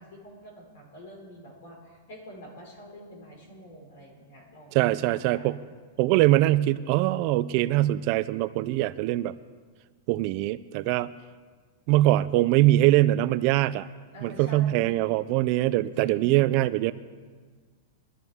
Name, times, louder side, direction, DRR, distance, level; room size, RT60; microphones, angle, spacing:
voice 1, 0.0-5.6 14.1-15.0 16.0-16.6, equal, 65° left, -1 dB, 4.7 m, -46 dB
voice 2, 4.7-5.6 6.0-9.3 10.1-11.1 11.9-13.9 14.2-16.9, right 16 dB, 35° right, 15 dB, 0.3 m, -23 dB
22.0 x 12.5 x 3.6 m, 1.5 s
supercardioid pair, 170°, 0 cm